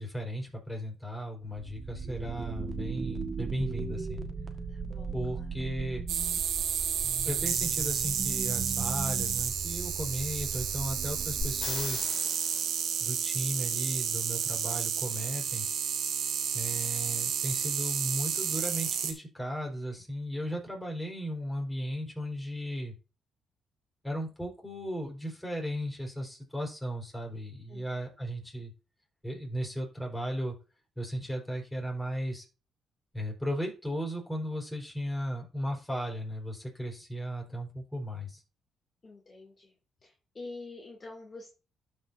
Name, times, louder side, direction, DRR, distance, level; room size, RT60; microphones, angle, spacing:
voice 1, 0.0-4.3 5.1-6.0 7.2-12.1 13.0-15.7 16.5-22.9 24.0-28.7 29.2-30.6 31.0-32.5 33.1-38.4, equal, 10° left, 0 dB, 4.4 m, -36 dB
sound 1, 1.4-12.1, right 5 dB, 35° right, 1.5 m, -38 dB
voice 2, 4.7-5.5 27.7-27.9 39.0-39.7 40.0-41.5, left 3 dB, 35° left, -1 dB, 2.6 m, -47 dB
sound 2, 6.1-19.1, right 8 dB, 75° right, 1.5 m, -31 dB
sound 3, 11.4-13.3 17.1-17.2, left 4 dB, 55° left, 2.7 m, -38 dB
12.0 x 5.6 x 2.7 m, 0.32 s
supercardioid pair, 70°, 0 cm